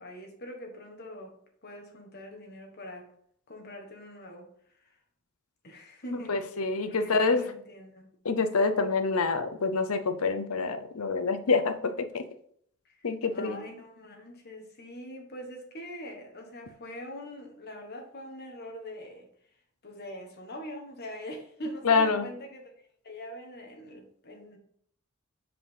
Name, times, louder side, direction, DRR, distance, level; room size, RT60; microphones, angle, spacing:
voice 1, 0.0-1.3 1.6-3.1 3.5-4.5 5.6-6.5 6.9-8.1 12.8-13.0 13.3-19.3 19.8-22.7 23.0-24.6, equal, 45° left, 1.5 m, -43 dB
voice 2, 6.3-7.5 8.2-12.3 13.0-13.6 21.8-22.3, left 4 dB, 75° left, 0.7 m, -26 dB
5.1 x 4.9 x 5.5 m
head